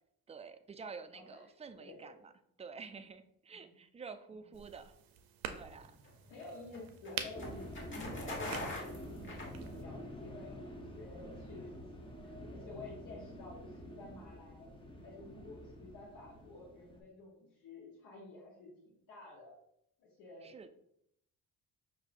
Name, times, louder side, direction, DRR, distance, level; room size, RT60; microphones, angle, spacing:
voice 1, 0.3-2.3 2.6-4.9 5.6-5.9 20.4-20.7, right 5 dB, 20° right, 9 dB, 0.3 m, -49 dB
voice 2, 1.1-2.0 3.6-3.8 4.3-4.5 6.3-14.7 15.0-19.6 20.0-20.6, left 2 dB, 90° left, -4 dB, 1.0 m, -51 dB
sound 1, 4.5-9.8, right 8 dB, 85° right, 0.5 m, -47 dB
sound 2, 5.7-10.1, left 1 dB, 35° left, 1.3 m, -43 dB
sound 3, 7.3-17.0, equal, 15° left, 0.8 m, -48 dB
5.9 x 2.6 x 2.5 m, 0.74 s
cardioid pair, 75°, 34 cm